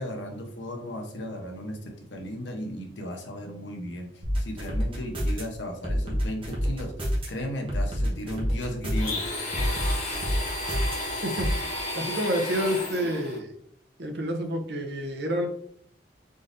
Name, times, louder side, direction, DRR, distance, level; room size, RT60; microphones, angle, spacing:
voice 1, 0.0-9.2, equal, 85° left, 2 dB, 0.9 m, -35 dB
sound 1, 4.2-5.4 5.8-7.3 7.7-9.1 9.5-11.0 11.4-11.5, equal, 30° right, 1.2 m, -27 dB
Domestic sounds home sounds, 8.9-13.4, left 2 dB, 40° left, 1.2 m, -32 dB
voice 2, 12.0-13.5 14.0-15.5, equal, 70° right, 2 dB, 0.8 m, -28 dB
4.0 x 3.7 x 2.6 m, 0.67 s
head